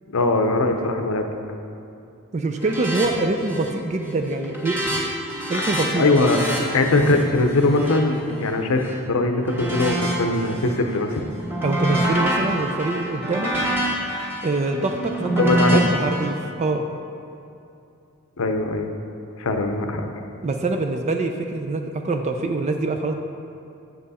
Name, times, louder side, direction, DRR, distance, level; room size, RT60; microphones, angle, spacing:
voice 1, 0.1-1.3 6.0-6.4 6.7-11.2 15.4-15.8 18.4-18.9 19.4-20.1, left 2 dB, 65° left, 5 dB, 0.7 m, -21 dB
voice 2, 2.3-5.0 5.5-6.1 11.6-13.5 14.4-16.8 20.4-23.1, right 2 dB, 30° right, 5 dB, 0.4 m, -24 dB
sound 1, 2.6-3.1 3.4-3.8 4.1-8.9 9.4-10.8 11.1-16.2, right 1 dB, 10° right, 1.4 m, -26 dB
7.8 x 7.3 x 4.1 m, 2.6 s
head